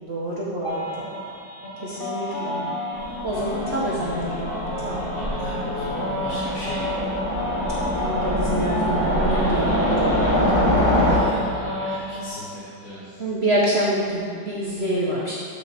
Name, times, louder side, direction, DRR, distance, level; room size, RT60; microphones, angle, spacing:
voice 1, 0.0-1.1 1.8-2.6 3.2-5.0 8.0-10.9 13.2-15.4, right 1 dB, 50° right, -6 dB, 0.8 m, -27 dB
sound 1, 0.6-12.3, left 1 dB, 35° left, 1.0 m, -31 dB
Train, 2.9-11.2, equal, 15° left, 0.9 m, -24 dB
voice 2, 5.1-7.2 11.0-13.2, equal, 70° left, -10 dB, 1.9 m, -37 dB
8.5 x 4.3 x 4.0 m, 2.3 s
omnidirectional pair, 2.0 m